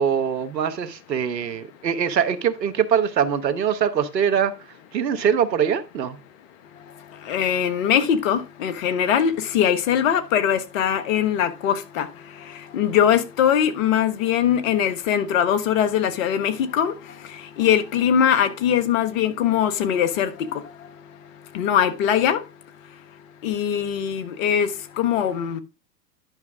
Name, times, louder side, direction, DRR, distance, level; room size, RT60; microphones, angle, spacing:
voice 1, 0.0-4.5 4.9-6.2, right 8 dB, 80° right, 1.2 m, -23 dB
voice 2, 7.3-12.1 12.7-16.9 17.6-20.6 21.5-22.4 23.4-24.7 25.0-25.6, left 9 dB, 50° left, 1.3 m, -21 dB
10.5 x 6.0 x 3.5 m
hypercardioid pair, 105°, 49 cm